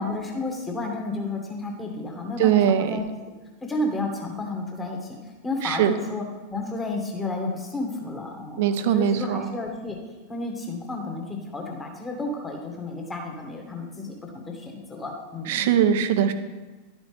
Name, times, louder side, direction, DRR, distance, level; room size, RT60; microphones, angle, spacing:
voice 1, 0.0-3.1 3.6-5.2 5.4-6.2 6.5-8.6 8.9-10.0 10.3-15.7, left 2 dB, 15° left, 0 dB, 1.8 m, -31 dB
voice 2, 2.4-3.0 5.6-5.9 8.6-9.5 15.5-16.3, right 9 dB, 50° right, 10 dB, 0.6 m, -21 dB
11.5 x 6.2 x 3.4 m, 1.2 s
figure-of-eight pair, 90°, 0 cm